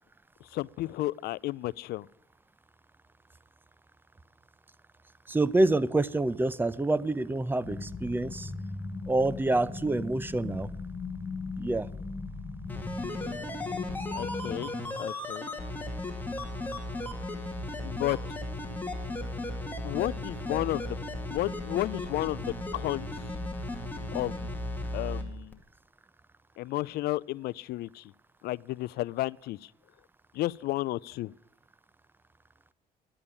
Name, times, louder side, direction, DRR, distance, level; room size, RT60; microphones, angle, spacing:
voice 1, 0.5-2.1 14.1-14.7 15.0-15.5 17.8-18.2 19.8-21.0 21.3-23.1 24.1-24.5 24.9-25.6 26.6-28.1 28.4-29.7 30.3-31.3, left 17 dB, 70° left, 0.4 m, -32 dB
voice 2, 5.3-8.5 9.1-10.7 11.6-11.9, right 2 dB, 10° right, 0.6 m, -27 dB
sound 1, 7.6-14.6, left 3 dB, 30° left, 1.9 m, -38 dB
sound 2, 12.7-25.2 25.5-25.6, left 2 dB, 10° left, 2.1 m, -35 dB
11.0 x 8.8 x 9.9 m
cardioid pair, 110°, 17 cm